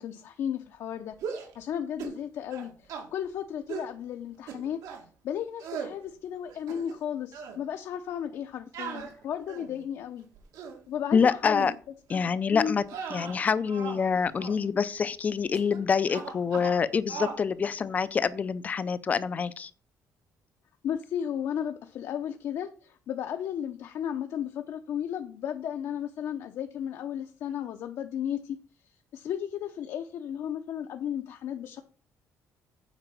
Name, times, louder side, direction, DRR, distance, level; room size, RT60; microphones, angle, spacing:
voice 1, 0.0-4.8 5.2-10.3 10.9-11.7 12.1-12.2 12.5-12.8 20.8-28.6 29.1-31.8, left 9 dB, 60° left, 0.8 m, -34 dB
sound 1, 1.1-1.6 2.0-2.2 2.5-3.1 3.7-3.9 4.5-5.0 5.6-5.9 6.5-7.1 7.3-7.6 8.7-9.8 10.3-10.8 11.5-11.7 12.1-12.3 12.8-14.1 14.4-14.6 15.5-15.8 16.1-16.8 17.1-17.4, right 6 dB, 75° right, 2.1 m, -39 dB
voice 2, 11.1-11.7 12.1-12.8 13.1-19.7, left 6 dB, 25° left, 0.5 m, -26 dB
8.9 x 5.0 x 7.0 m
cardioid pair, 175°, 6 cm